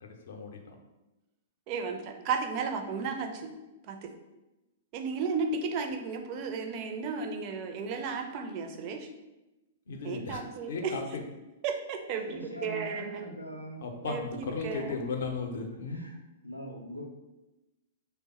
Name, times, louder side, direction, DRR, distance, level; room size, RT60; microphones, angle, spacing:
voice 1, 0.0-0.7 9.9-10.4 10.7-11.0 13.8-16.0, left 4 dB, 55° left, 3 dB, 0.5 m, -36 dB
voice 2, 1.7-3.5 3.9-4.1 4.9-9.1 10.0-11.0 11.6-13.3 14.0-15.0, right 5 dB, 35° right, 6 dB, 0.4 m, -34 dB
voice 3, 12.0-13.9 15.9-16.1 16.4-17.0, equal, 90° right, 0 dB, 0.6 m, -42 dB
3.3 x 2.0 x 4.0 m, 1.0 s
figure-of-eight pair, 105°, 0 cm